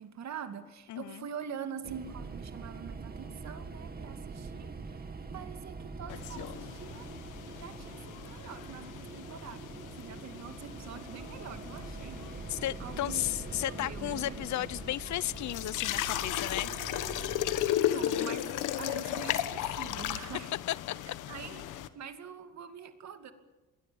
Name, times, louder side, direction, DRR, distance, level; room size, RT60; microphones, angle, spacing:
voice 1, 0.0-7.1 7.5-12.3 12.8-14.7 17.9-20.5 21.3-23.3, right 7 dB, 65° right, 7 dB, 2.6 m, -45 dB
voice 2, 0.9-1.3 12.5-16.7 20.7-21.0, left 14 dB, 70° left, 21 dB, 0.7 m, -34 dB
sound 1, 1.8-17.7, right 4 dB, 30° right, 2.5 m, -44 dB
sound 2, 6.1-21.9, left 12 dB, 90° left, 1.3 m, -36 dB
27.0 x 21.0 x 7.1 m, 1.1 s
cardioid pair, 90°, 30 cm